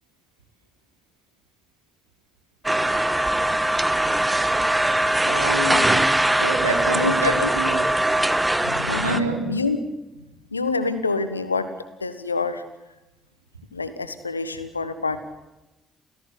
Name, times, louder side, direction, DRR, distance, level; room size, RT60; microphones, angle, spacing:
sound 1, 2.6-9.2, right 1 dB, 10° right, 1.5 m, -21 dB
voice 1, 5.2-7.9 9.0-9.5, right 2 dB, 90° right, 3 dB, 3.2 m, -28 dB
voice 2, 6.9-7.5 8.6-9.8 10.5-11.7 12.0-12.6 13.7-15.2, left 3 dB, 90° left, 13 dB, 1.4 m, -26 dB
29.0 x 16.5 x 8.5 m, 1.0 s
figure-of-eight pair, 45°, 0 cm